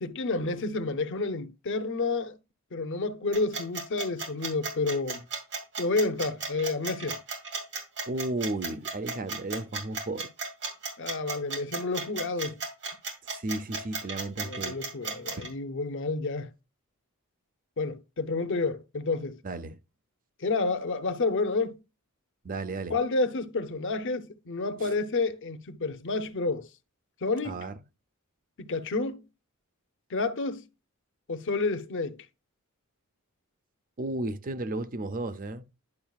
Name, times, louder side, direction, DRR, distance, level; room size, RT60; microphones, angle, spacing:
voice 1, 0.0-2.4 2.7-5.2 5.8-7.2 11.0-12.6 14.4-16.5 17.8-19.4 20.4-21.8 22.9-26.7 27.2-27.7 28.6-29.2 30.1-30.7 31.3-32.2, left 3 dB, 60° left, 0.7 m, -30 dB
sound 1, 3.3-15.5, right 4 dB, 55° right, 2.6 m, -34 dB
voice 2, 8.1-10.3 13.3-14.8 15.4-15.5 19.4-19.8 22.4-22.9 24.8-24.9 27.4-27.7 34.0-35.6, right 2 dB, 40° right, 0.6 m, -34 dB
10.5 x 5.5 x 2.4 m
head